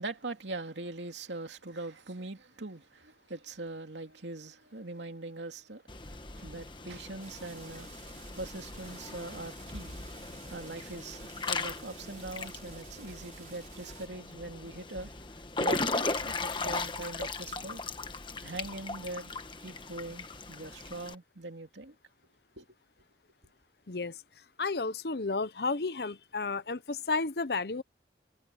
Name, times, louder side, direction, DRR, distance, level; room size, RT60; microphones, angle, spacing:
voice 1, 0.0-10.0 10.5-15.1 15.6-17.8 18.4-22.0 22.6-22.7, right 2 dB, 85° right, 2.7 m, -42 dB
Water / Splash splatter / Drip, 5.9-21.1, left 3 dB, 25° left, 1.3 m, -38 dB
sound 1, 7.2-14.1, right 5 dB, 45° right, 4.9 m, -53 dB
voice 2, 23.9-24.2 24.6-27.8, left 3 dB, 60° left, 0.9 m, -32 dB
head